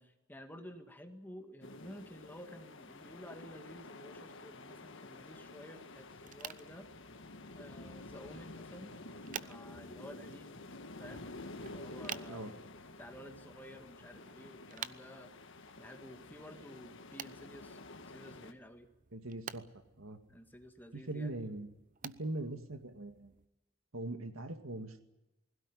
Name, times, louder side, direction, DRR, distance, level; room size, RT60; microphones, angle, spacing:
voice 1, 0.0-6.9 7.6-9.0 9.2-10.6 11.0-11.3 11.6-12.5 13.0-15.3 15.8-18.9 20.3-21.4, equal, 10° left, 6 dB, 2.0 m, -52 dB
sound 1, 1.6-18.5, left 2 dB, 65° left, 1.7 m, -50 dB
sound 2, 6.2-23.5, right 8 dB, 40° right, 0.7 m, -52 dB
voice 2, 19.1-19.7 20.0-20.2 20.9-21.7 22.0-23.3 23.9-25.0, right 2 dB, 85° right, 8 dB, 2.1 m, -41 dB
20.5 x 17.0 x 9.9 m, 0.94 s
head